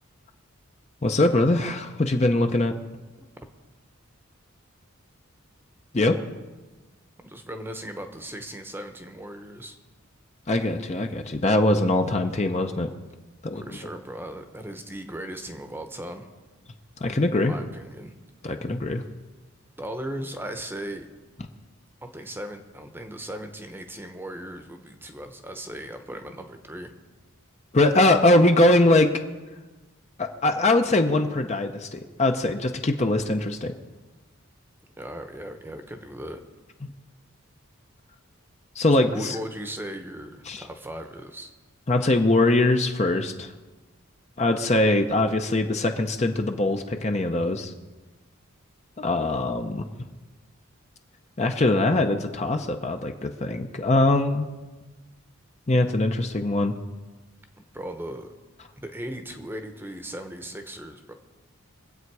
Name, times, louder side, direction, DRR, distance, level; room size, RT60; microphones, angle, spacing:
voice 1, 1.0-2.8 5.9-6.2 10.5-12.9 13.4-13.6 17.0-17.5 18.4-19.0 27.7-29.1 30.2-33.7 38.8-39.4 40.5-40.6 41.9-43.5 44.4-47.7 49.0-49.8 51.4-54.5 55.7-56.7, left 2 dB, 30° left, 5 dB, 0.7 m, -22 dB
voice 2, 7.2-9.8 13.5-16.3 17.3-18.1 19.8-21.1 22.0-26.9 35.0-36.4 39.0-41.5 57.7-58.3 58.8-61.1, right 1 dB, 10° right, 6 dB, 0.9 m, -37 dB
23.0 x 8.1 x 4.7 m, 1.2 s
head